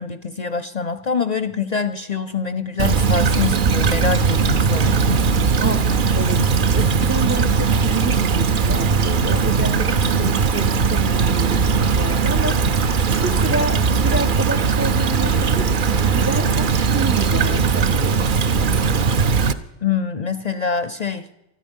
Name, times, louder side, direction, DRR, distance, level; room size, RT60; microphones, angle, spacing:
voice 1, 0.0-5.5 19.8-21.3, left 5 dB, 45° left, 12 dB, 0.6 m, -25 dB
Stream / Trickle dribble, 2.8-19.5, right 5 dB, 50° right, 0.8 m, -19 dB
voice 2, 5.6-18.7, right 2 dB, 20° right, 12 dB, 0.4 m, -29 dB
19.5 x 13.0 x 5.5 m, 0.91 s
omnidirectional pair, 1.3 m